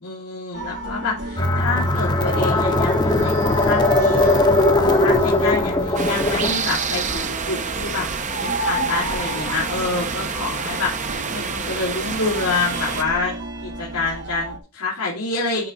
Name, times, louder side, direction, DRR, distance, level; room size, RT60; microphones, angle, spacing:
voice 1, 0.0-8.1 8.4-13.4 13.6-15.7, left 3 dB, 85° left, -6 dB, 2.4 m, -27 dB
sound 1, 0.5-14.6, right 1 dB, 50° right, 1.0 m, -32 dB
sound 2, 1.4-6.5, left 2 dB, 20° left, 0.8 m, -19 dB
sound 3, 6.0-13.0, right 5 dB, 35° right, 0.7 m, -28 dB
9.4 x 3.7 x 4.2 m, 0.33 s
head